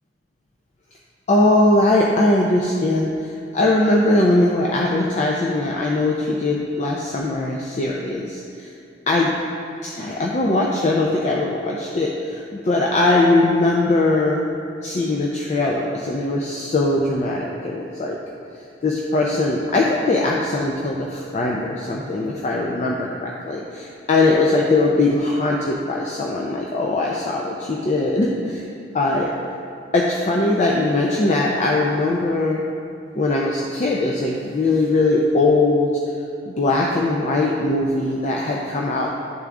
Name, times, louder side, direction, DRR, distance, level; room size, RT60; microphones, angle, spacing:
voice 1, 1.3-8.7 9.1-9.4 9.8-14.4 14.8-18.2 18.8-28.6 28.9-29.3 29.9-32.6 33.1-35.9 36.5-39.1, left 2 dB, 40° left, -2 dB, 0.4 m, -20 dB
10.0 x 3.6 x 3.5 m, 2.5 s
head